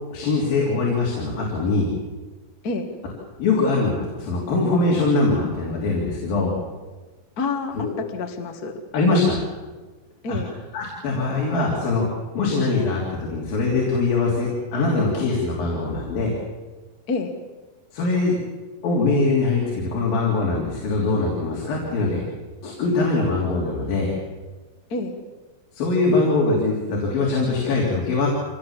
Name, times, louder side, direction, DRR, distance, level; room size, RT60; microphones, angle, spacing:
voice 1, 0.1-1.9 3.4-6.5 7.7-7.9 8.9-9.4 10.3-10.4 10.7-12.0 12.3-16.3 17.9-18.4 18.8-22.2 22.6-24.1 25.7-28.3, left 3 dB, 75° left, -3 dB, 5.1 m, -22 dB
voice 2, 7.4-8.8 10.2-10.5 17.1-17.3 24.9-25.1, left 3 dB, 45° left, 5 dB, 1.2 m, -28 dB
25.0 x 19.0 x 7.4 m, 1.3 s
omnidirectional pair, 4.1 m